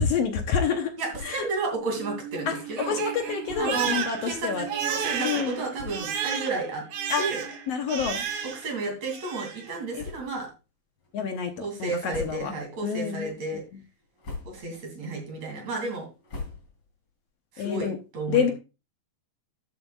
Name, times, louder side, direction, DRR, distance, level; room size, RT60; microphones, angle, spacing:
voice 1, 0.0-0.9 1.2-1.5 2.5-4.7 5.2-5.6 7.1-7.2 7.7-8.2 9.9-10.0 11.1-11.5 11.8-12.5 12.8-13.3 17.6-18.0 18.3-18.5, left 6 dB, 65° left, 5 dB, 1.8 m, -27 dB
voice 2, 1.0-3.0 3.6-6.9 7.2-7.4 8.4-10.5 11.6-13.6 14.5-16.1 17.5-18.5, right 3 dB, 60° right, 2 dB, 4.0 m, -32 dB
sound 1, 1.1-1.6 1.9-2.0 2.3-2.4 3.4-3.9 4.6-4.7 5.4-5.5 5.7-6.3 6.8-7.0 7.9-8.6 8.9-9.1 9.9-10.5 11.0-11.4 11.9-12.8 13.1-13.6 14.0-14.8 15.2-17.0, left 3 dB, 35° left, 3.8 m, -42 dB
Crying sobbing, 1.7-8.7 9.0-9.7, right 8 dB, 80° right, 2.9 m, -33 dB
12.0 x 7.6 x 2.4 m, 0.29 s
omnidirectional pair, 3.5 m